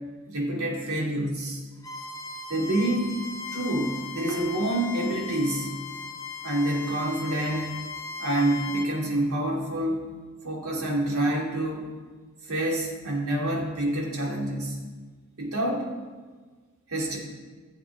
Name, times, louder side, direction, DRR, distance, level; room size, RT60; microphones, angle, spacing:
voice 1, 0.3-1.6 2.5-3.2 3.5-5.7 6.4-7.8 8.2-10.0 10.4-11.8 12.5-14.8 15.4-15.9 16.9-17.2, right 1 dB, 85° right, -2 dB, 2.7 m, -27 dB
Bowed string instrument, 1.8-8.9, left 5 dB, 15° left, 0.8 m, -38 dB
16.0 x 7.6 x 3.6 m, 1.4 s
head